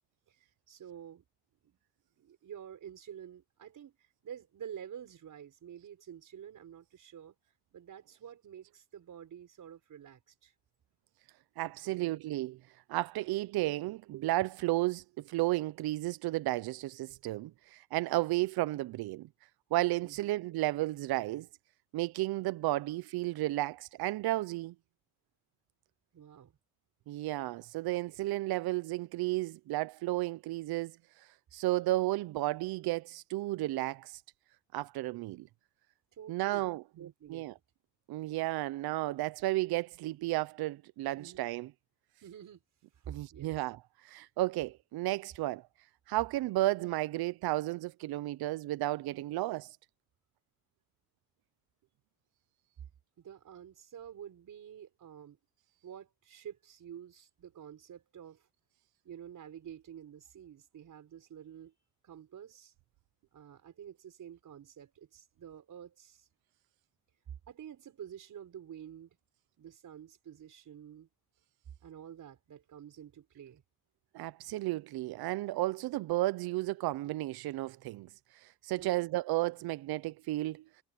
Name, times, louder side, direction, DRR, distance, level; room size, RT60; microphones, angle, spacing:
voice 1, 0.7-1.2 1.6-1.8 2.1-7.4 7.7-10.5 11.6-12.2 20.0-20.3 26.1-26.6 28.1-28.2 36.1-36.7 37.0-37.6 41.2-41.4 42.2-42.6 42.9-43.6 53.2-55.4 55.8-58.5 59.0-61.7 62.0-62.7 63.3-66.3 67.5-69.2 69.6-71.1 71.8-73.6 78.8-79.1, right 9 dB, 55° right, 5.8 m, -49 dB
voice 2, 11.6-12.6 12.9-19.3 19.7-21.5 21.9-24.7 27.1-34.2 34.7-35.5 36.3-36.8 37.3-37.5 38.1-41.7 43.1-45.7 46.1-49.8 74.1-80.6, right 17 dB, 80° right, 0.6 m, -33 dB
cardioid pair, 120°, 37 cm